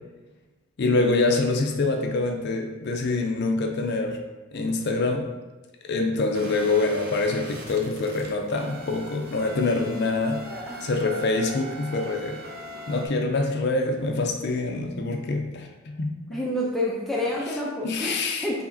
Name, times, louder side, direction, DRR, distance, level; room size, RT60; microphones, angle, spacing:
voice 1, 0.8-4.2 4.5-5.3 5.8-10.4 10.8-12.4 12.9-16.1 17.8-18.5, left 3 dB, 55° left, 3 dB, 0.5 m, -25 dB
sound 1, 6.3-13.1, right 2 dB, 50° right, 0.7 m, -40 dB
voice 2, 10.4-10.9 16.3-18.6, left 1 dB, ahead, -5 dB, 0.5 m, -29 dB
4.8 x 3.2 x 2.6 m, 1.2 s
head